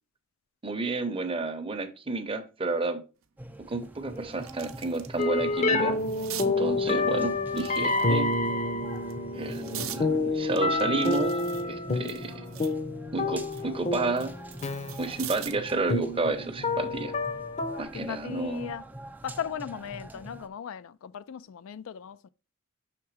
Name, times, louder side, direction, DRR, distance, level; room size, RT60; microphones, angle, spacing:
voice 1, 0.6-3.0 3.7-6.0 6.4-8.4 9.3-12.5 13.1-14.3 15.0-17.1 17.8-18.7, right 3 dB, 25° right, 0.7 m, -31 dB
sound 1, 3.2-3.3 3.8-5.2 5.6-6.5 7.5-8.3 8.9-10.0 10.6-12.8 13.2-15.7 17.0-17.3, right 12 dB, 85° right, 0.6 m, -43 dB
sound 2, 3.4-20.5, right 1 dB, 10° right, 0.3 m, -44 dB
sound 3, 5.2-17.8, left 3 dB, 35° left, 0.6 m, -29 dB
voice 2, 17.9-18.9 19.2-22.3, left 8 dB, 75° left, 0.3 m, -38 dB
5.9 x 3.5 x 4.7 m
head